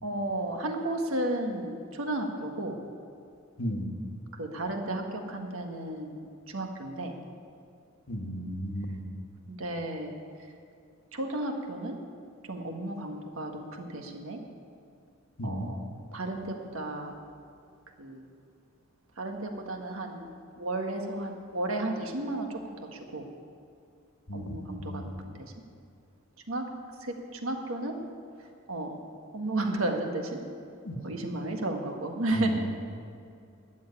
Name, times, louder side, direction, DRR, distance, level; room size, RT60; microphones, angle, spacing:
voice 1, 0.0-2.7 4.3-7.1 9.5-10.1 11.1-12.0 12.5-14.4 15.4-15.8 16.1-17.1 18.0-18.2 19.2-20.3 20.6-22.6 22.9-23.2 24.3-25.5 26.5-26.7 27.0-27.9 28.7-29.0 29.3-30.4 31.0-32.6, right 1 dB, 85° right, 3 dB, 1.7 m, -33 dB
voice 2, 3.6-3.9 8.1-9.0 15.4-15.7 24.3-25.1 30.8-31.0 32.3-32.6, equal, 80° left, 3 dB, 1.5 m, -34 dB
13.0 x 7.5 x 9.9 m, 2.4 s
head